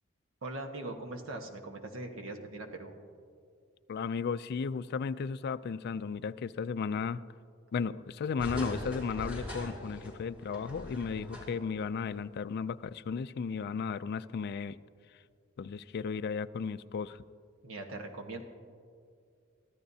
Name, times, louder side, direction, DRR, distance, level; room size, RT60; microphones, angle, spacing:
voice 1, 0.4-3.0 17.6-18.4, right 2 dB, 70° right, 3 dB, 1.3 m, -41 dB
voice 2, 3.9-7.2 7.7-14.8 15.6-17.2, left 5 dB, 50° left, 13 dB, 0.3 m, -35 dB
sound 1, 8.4-11.8 12.1-12.2, left 1 dB, 5° right, 4.0 m, -41 dB
24.0 x 14.0 x 2.8 m, 2.3 s
head